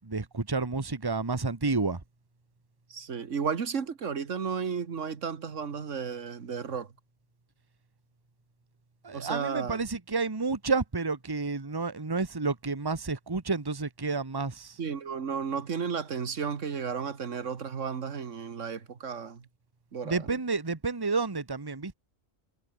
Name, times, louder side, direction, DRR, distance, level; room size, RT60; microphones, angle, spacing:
voice 1, 0.0-2.0 9.0-14.8 20.0-21.9, right 4 dB, 20° right, 1.3 m, -30 dB
voice 2, 2.9-6.9 9.1-9.8 14.8-19.4 19.9-20.2, right 6 dB, 80° right, 1.8 m, -33 dB
omnidirectional pair, 1.3 m